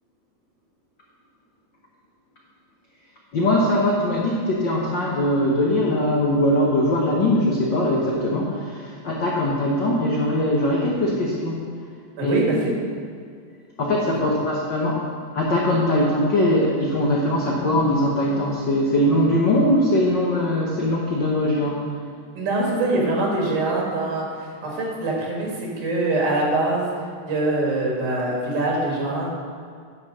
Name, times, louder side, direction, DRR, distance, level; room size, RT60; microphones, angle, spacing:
voice 1, 3.3-11.6 12.2-12.4 13.8-15.0 15.3-21.8, left 1 dB, 85° left, -3 dB, 1.0 m, -21 dB
voice 2, 12.2-12.7 22.4-24.3 24.6-26.9 27.3-29.3, right 2 dB, 85° right, -3 dB, 3.3 m, -23 dB
10.5 x 4.4 x 6.3 m, 2.2 s
omnidirectional pair, 3.5 m